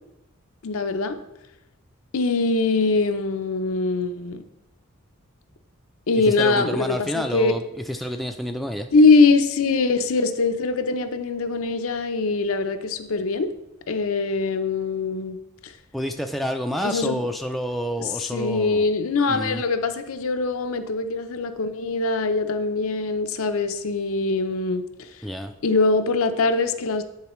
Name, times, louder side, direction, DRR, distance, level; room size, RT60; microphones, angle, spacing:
voice 1, 0.6-1.2 2.1-4.4 6.1-7.6 8.9-13.5 13.9-15.4 15.6-15.7 16.8-17.2 18.3-25.2 25.6-27.0, left 3 dB, 75° left, 8 dB, 0.6 m, -22 dB
voice 2, 6.3-8.9 15.9-18.9 19.3-19.6 25.2-25.5, equal, ahead, 4 dB, 0.3 m, -29 dB
10.0 x 4.0 x 3.0 m, 0.89 s
head